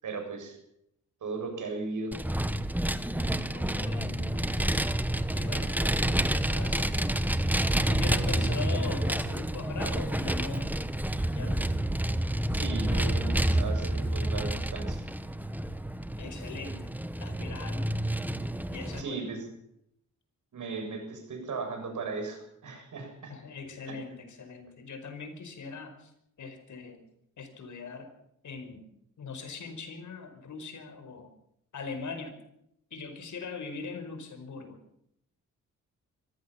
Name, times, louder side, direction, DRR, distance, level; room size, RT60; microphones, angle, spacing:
voice 1, 0.0-0.6 1.2-2.2 8.3-8.5 12.5-15.1 19.0-19.5 20.5-23.4 23.9-24.0, right 4 dB, 75° right, 4 dB, 7.4 m, -37 dB
Vehicle, 2.1-19.0, right 1 dB, 5° right, 1.1 m, -29 dB
voice 2, 3.1-4.8 5.3-7.4 7.8-10.7 11.3-11.7 16.2-16.9 17.2-17.9 18.7-19.3 23.3-26.1 26.4-27.0 27.4-28.1 28.4-28.9 29.2-31.3 31.7-32.4 32.9-34.8, left 4 dB, 70° left, 7 dB, 5.1 m, -41 dB
24.5 x 15.5 x 7.2 m, 0.76 s
cardioid pair, 110°, 31 cm